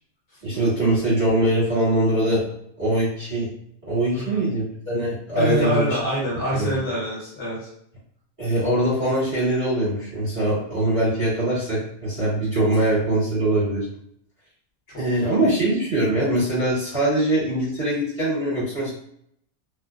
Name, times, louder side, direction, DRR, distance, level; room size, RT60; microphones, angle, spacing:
voice 1, 0.4-2.5 2.8-3.5 3.8-6.0 6.5-6.8 8.4-13.8 14.9-18.9, right 1 dB, 30° right, -11 dB, 1.4 m, -22 dB
voice 2, 5.4-7.7 14.9-15.4, equal, 55° left, -5 dB, 1.3 m, -26 dB
2.6 x 2.1 x 2.4 m, 0.70 s
omnidirectional pair, 1.2 m